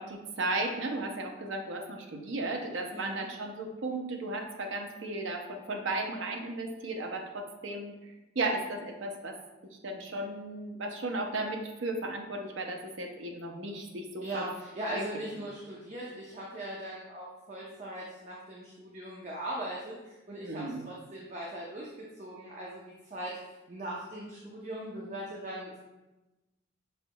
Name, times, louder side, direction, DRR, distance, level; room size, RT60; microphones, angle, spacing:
voice 1, 0.0-7.9 8.4-9.4 9.8-14.5 14.9-15.0 20.4-20.9, right 2 dB, 75° right, 4 dB, 0.6 m, -35 dB
voice 2, 2.9-3.3 14.2-22.8 23.1-23.4 23.7-25.8, right 1 dB, 40° right, -4 dB, 0.6 m, -39 dB
6.0 x 3.5 x 2.2 m, 1.0 s
head